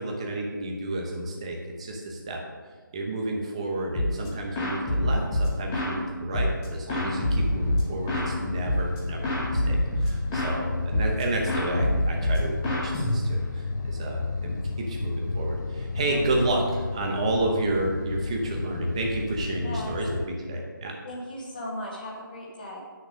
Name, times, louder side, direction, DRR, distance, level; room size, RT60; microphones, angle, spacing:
voice 1, 0.0-2.4 2.9-21.0, right 2 dB, 15° right, 0 dB, 0.8 m, -30 dB
sound 1, 4.0-4.3 4.6-6.0 6.3-8.3 8.7-9.0 9.2-10.6 10.9-11.2 11.5-13.6, left 1 dB, 10° left, 1.0 m, -26 dB
sound 2, 6.9-20.3, left 3 dB, 60° left, 0.5 m, -33 dB
voice 2, 19.6-20.0 21.0-22.8, left 1 dB, 25° left, -3 dB, 1.5 m, -37 dB
9.1 x 6.5 x 5.1 m, 1.5 s
hypercardioid pair, 175°, 11 cm